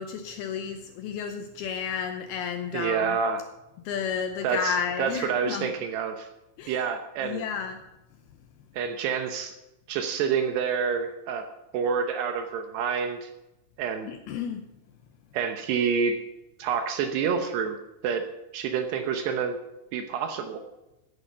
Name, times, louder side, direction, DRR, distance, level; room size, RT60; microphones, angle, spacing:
voice 1, 0.0-3.2 3.9-5.7 6.6-6.8 7.2-7.8 14.1-14.6, left 7 dB, 85° left, 7 dB, 2.2 m, -32 dB
voice 2, 2.7-3.4 4.4-6.3 6.7-7.4 8.7-9.5 9.9-11.5 11.7-13.3 13.8-14.1 15.3-16.2 16.6-17.8 18.0-18.3 18.5-19.6 19.9-20.6, right 6 dB, 75° right, 7 dB, 2.8 m, -28 dB
15.0 x 9.9 x 5.5 m, 0.95 s
omnidirectional pair, 5.4 m